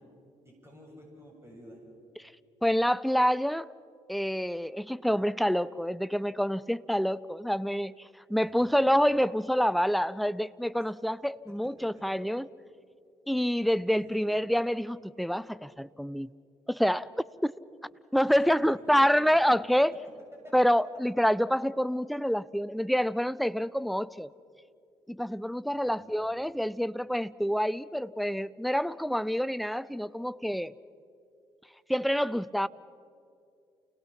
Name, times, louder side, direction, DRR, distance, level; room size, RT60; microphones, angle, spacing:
voice 1, 0.4-1.8 8.4-8.8 11.5-12.0 14.0-14.2 18.2-19.2 19.9-20.6 25.8-26.3, equal, 15° right, 7.1 m, -51 dB
voice 2, 2.6-3.7 4.1-12.5 13.3-16.3 16.7-17.1 17.4-17.5 18.1-20.0 20.5-24.3 25.1-30.7 31.9-32.7, equal, ahead, 0.6 m, -27 dB
29.5 x 18.0 x 5.8 m
hypercardioid pair, 40°, 16 cm